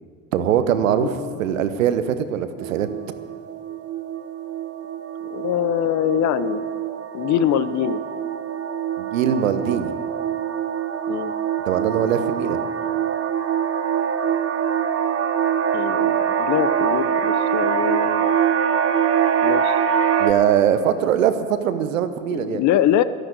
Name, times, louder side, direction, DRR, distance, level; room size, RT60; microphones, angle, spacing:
voice 1, 0.3-2.9 9.0-9.9 11.7-12.6 20.2-22.6, right 9 dB, 80° right, 11 dB, 1.0 m, -21 dB
voice 2, 1.0-1.4 5.3-6.7 7.1-8.0 11.1-11.3 11.9-12.3 15.7-18.4 19.4-19.8 22.3-23.0, left 11 dB, 45° left, 14 dB, 0.8 m, -23 dB
sound 1, 2.6-20.3, right 8 dB, 40° right, 1.2 m, -24 dB
12.0 x 11.0 x 8.1 m, 2.1 s
hypercardioid pair, 70°, 39 cm